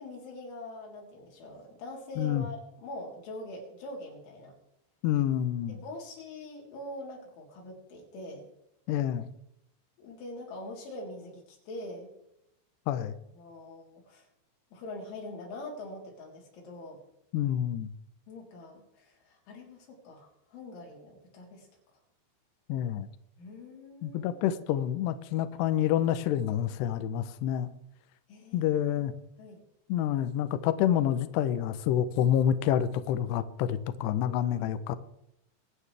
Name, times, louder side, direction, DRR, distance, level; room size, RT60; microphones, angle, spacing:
voice 1, 0.0-4.5 5.7-8.5 10.0-12.1 13.4-14.3 14.7-17.0 18.3-21.7 23.4-24.3 28.3-28.8 29.4-29.6 34.6-34.8, left 1 dB, 70° left, -2 dB, 5.8 m, -43 dB
voice 2, 5.0-5.7 8.9-9.3 12.9-13.1 17.3-17.9 22.7-23.1 24.0-27.7 28.5-29.1 29.9-35.0, left 10 dB, 85° left, 12 dB, 2.4 m, -28 dB
24.5 x 9.4 x 3.3 m, 0.82 s
omnidirectional pair, 5.8 m